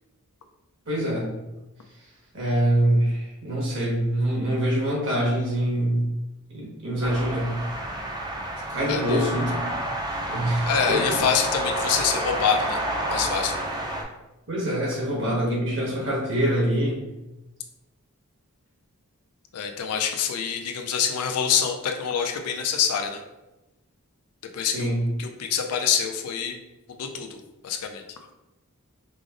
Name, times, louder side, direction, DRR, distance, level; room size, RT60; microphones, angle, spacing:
voice 1, 0.9-1.3 2.3-6.0 6.5-7.5 8.7-9.7 10.3-11.0 14.5-17.0 24.6-25.0, right 1 dB, 55° right, -4 dB, 1.2 m, -24 dB
sound 1, 7.0-14.0, right 1 dB, 20° right, 0.4 m, -29 dB
voice 2, 8.9-9.3 10.6-12.8 13.1-13.5 19.5-23.2 24.5-24.9 25.2-26.5 27.0-28.0, left 7 dB, 85° left, 4 dB, 0.4 m, -26 dB
4.8 x 2.0 x 2.5 m, 1.0 s
head